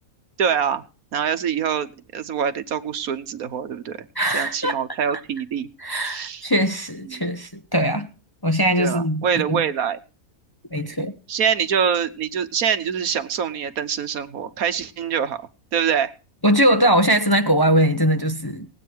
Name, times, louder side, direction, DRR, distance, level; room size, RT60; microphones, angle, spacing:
voice 1, 0.4-0.8 1.1-4.0 4.3-5.7 6.0-6.4 7.0-7.2 8.8-10.0 11.3-16.1, right 7 dB, 75° right, 10 dB, 1.4 m, -25 dB
voice 2, 4.2-4.8 5.8-8.1 8.4-9.6 10.7-11.1 16.4-18.7, equal, 20° left, 7 dB, 0.8 m, -21 dB
18.5 x 8.9 x 4.6 m, 0.36 s
omnidirectional pair, 1.5 m